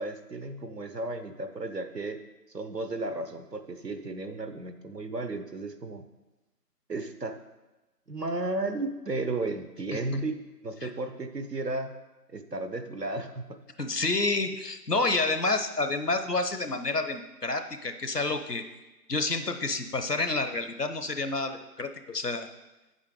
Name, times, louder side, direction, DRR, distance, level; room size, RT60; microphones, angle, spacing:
voice 1, 0.0-2.2 2.5-6.0 6.9-7.4 8.1-10.4 10.6-12.0 12.3-13.6, right 2 dB, 75° right, 9 dB, 1.1 m, -34 dB
voice 2, 13.8-18.6 19.1-22.5, left 3 dB, 70° left, 8 dB, 1.0 m, -29 dB
8.3 x 7.7 x 4.8 m, 1.1 s
figure-of-eight pair, 175°, 49 cm